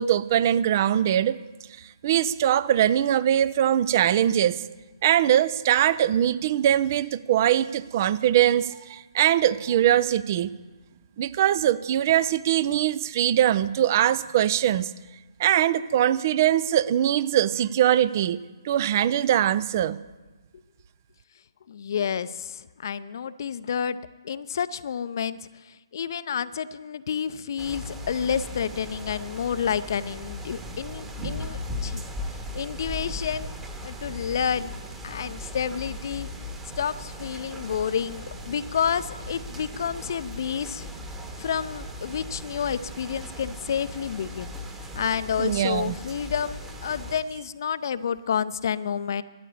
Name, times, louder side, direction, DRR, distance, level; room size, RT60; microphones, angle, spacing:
voice 1, 0.0-1.4 2.0-4.6 5.0-10.5 11.2-14.9 15.4-18.4 18.6-20.0 45.4-45.9, right 11 dB, 35° right, 17 dB, 0.5 m, -22 dB
voice 2, 21.7-24.0 24.2-25.4 25.9-32.0 32.5-33.5 33.8-34.7 35.0-36.3 36.8-40.9 41.4-44.5 44.9-49.2, left 7 dB, 45° left, 15 dB, 0.6 m, -29 dB
sound 1, 27.6-47.2, left 1 dB, 10° right, 1.3 m, -38 dB
13.0 x 10.0 x 8.4 m, 1.2 s
figure-of-eight pair, 135°, 3 cm